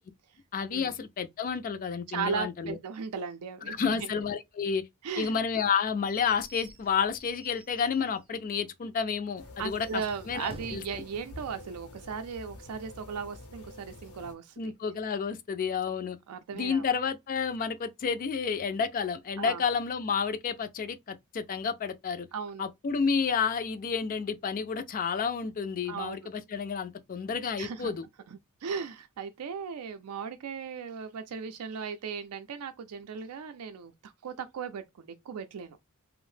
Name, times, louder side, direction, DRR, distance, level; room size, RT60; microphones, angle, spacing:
voice 1, 0.5-2.8 3.7-4.8 5.2-10.8 14.6-16.2 16.5-22.3 22.6-28.0, left 6 dB, 40° left, 0.4 m, -30 dB
voice 2, 2.1-3.9 5.0-5.3 9.6-14.7 16.3-16.9 19.4-19.6 22.3-22.7 25.9-26.2 27.6-28.0 28.3-35.8, right 6 dB, 85° right, 0.4 m, -37 dB
Slam / Squeak / Wood, 5.2-8.4 8.7-8.8 9.1-9.2 9.7-11.1, right 2 dB, 25° right, 0.5 m, -51 dB
sound 1, 9.4-14.3, left 1 dB, 70° left, 0.7 m, -48 dB
2.6 x 2.0 x 3.2 m
head